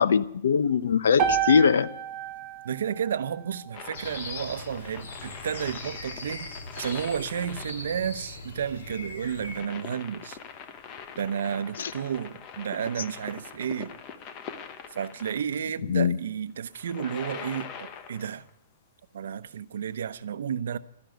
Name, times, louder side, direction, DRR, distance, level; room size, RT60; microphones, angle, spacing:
voice 1, 0.0-1.9 11.8-11.9 15.9-16.2, left 6 dB, 80° left, 0.8 m, -21 dB
sound 1, 1.2-5.4, right 8 dB, 25° right, 1.3 m, -32 dB
voice 2, 2.6-6.5 6.7-10.4 11.2-13.9 14.9-18.5 19.1-20.8, right 8 dB, 70° right, 0.9 m, -32 dB
sound 2, 3.7-15.6 16.6-18.5 20.0-20.1, left 7 dB, 20° left, 0.9 m, -43 dB
sound 3, 3.9-9.6, left 2 dB, 55° left, 3.9 m, -40 dB
13.0 x 10.5 x 9.3 m
hypercardioid pair, 180°, 0 cm